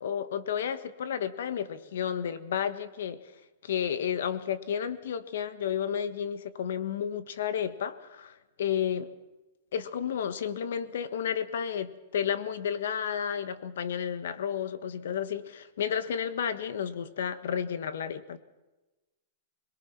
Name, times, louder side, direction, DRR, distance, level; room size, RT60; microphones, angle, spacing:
voice 1, 0.0-3.2 3.6-9.1 9.7-18.4, left 8 dB, 75° left, 13 dB, 1.5 m, -32 dB
23.0 x 21.5 x 6.0 m, 1.1 s
supercardioid pair, 165°, 0 cm